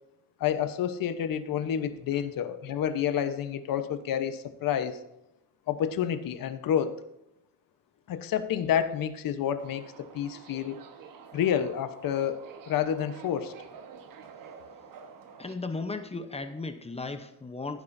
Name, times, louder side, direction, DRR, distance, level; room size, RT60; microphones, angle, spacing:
voice 1, 0.4-5.0 5.7-7.0 8.1-10.8 11.3-13.5, left 9 dB, 75° left, 10 dB, 1.1 m, -29 dB
Subway metro underground, 9.6-15.5, right 6 dB, 75° right, 1.4 m, -48 dB
voice 2, 15.4-17.8, left 3 dB, 20° left, 8 dB, 0.9 m, -36 dB
16.0 x 9.4 x 2.7 m, 0.87 s
cardioid pair, 140°, 34 cm